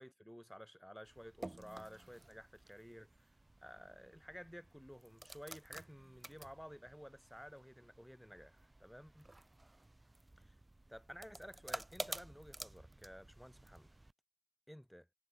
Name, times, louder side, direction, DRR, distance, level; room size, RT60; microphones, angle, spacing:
voice 1, 0.0-3.3 3.6-9.3 10.9-13.9 14.7-15.1, equal, ahead, 1.5 m, -54 dB
sound 1, 1.0-14.1, right 2 dB, 20° right, 0.8 m, -52 dB
cardioid pair, 50°, 0 cm